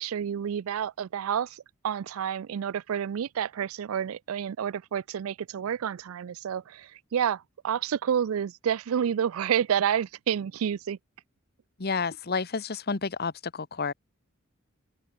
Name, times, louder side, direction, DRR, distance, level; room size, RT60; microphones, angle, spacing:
voice 1, 0.0-11.0, right 8 dB, 85° right, 0.4 m, -29 dB
voice 2, 11.8-13.9, left 4 dB, 50° left, 1.0 m, -30 dB
open air
head